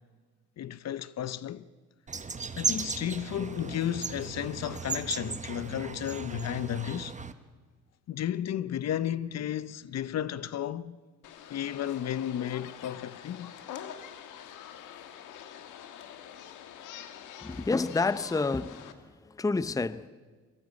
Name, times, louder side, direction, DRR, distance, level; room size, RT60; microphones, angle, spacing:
voice 1, 0.6-1.7 2.6-7.1 8.1-11.0 11.5-13.5, left 10 dB, 60° left, 0.8 m, -33 dB
sound 1, 2.1-7.3, right 5 dB, 25° right, 1.3 m, -36 dB
sound 2, 11.2-18.9, left 9 dB, 90° left, 1.6 m, -46 dB
voice 2, 17.4-18.9 19.4-20.1, left 3 dB, 10° left, 0.6 m, -28 dB
23.0 x 17.5 x 8.3 m
cardioid pair, 90°, 30 cm